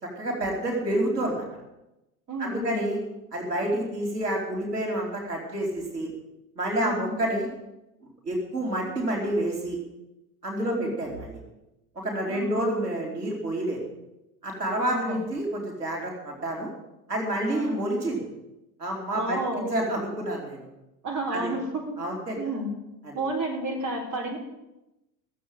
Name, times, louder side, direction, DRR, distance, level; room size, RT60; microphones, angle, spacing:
voice 1, 0.0-1.4 2.4-3.0 3.3-6.1 6.6-7.5 8.0-9.8 10.4-11.3 12.0-13.8 14.4-16.7 17.1-18.2 18.8-20.7 21.3-21.5 22.0-22.4 23.0-23.1, right 1 dB, 80° right, 0 dB, 3.9 m, -29 dB
voice 2, 2.3-2.7 6.8-7.1 10.6-10.9 12.3-12.7 14.8-15.2 17.5-17.8 19.1-19.7 21.0-22.0 22.4-22.7 23.1-24.4, right 1 dB, 40° right, 0 dB, 4.0 m, -31 dB
16.0 x 7.7 x 9.3 m, 0.95 s
figure-of-eight pair, 75°, 46 cm